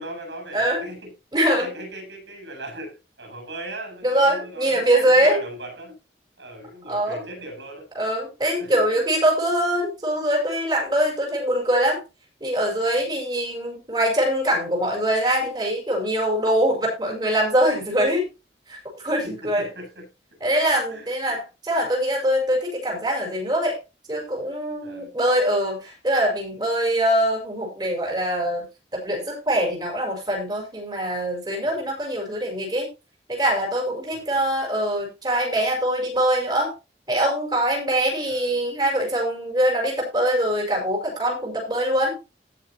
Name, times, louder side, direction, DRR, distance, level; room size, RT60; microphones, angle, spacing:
voice 1, 0.0-1.1 1.4-6.0 6.4-7.9 8.5-8.9 19.2-20.1 20.9-21.4 24.8-25.2 31.6-31.9 34.1-34.5 38.3-38.6, right 1 dB, 85° right, 4 dB, 7.8 m, -39 dB
voice 2, 1.3-1.7 4.0-5.4 6.9-7.3 7.9-12.0 12.4-18.3 18.7-18.8 19.0-19.7 20.4-23.8 24.1-28.6 28.9-32.9 33.3-36.7 37.1-42.2, right 1 dB, 25° right, 0 dB, 5.1 m, -23 dB
18.0 x 6.8 x 2.9 m, 0.27 s
head